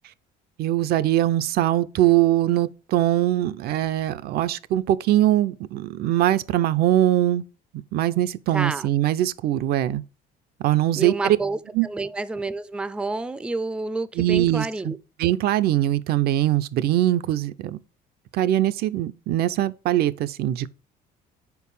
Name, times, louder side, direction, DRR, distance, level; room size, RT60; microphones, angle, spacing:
voice 1, 0.6-7.4 7.9-10.0 10.6-11.4 11.7-11.9 14.2-14.9 15.2-17.8 18.3-20.7, right 13 dB, 70° right, 0.4 m, -22 dB
voice 2, 8.5-8.9 11.0-15.0, right 3 dB, 5° right, 0.3 m, -29 dB
4.6 x 4.6 x 5.3 m
cardioid pair, 110°, 17 cm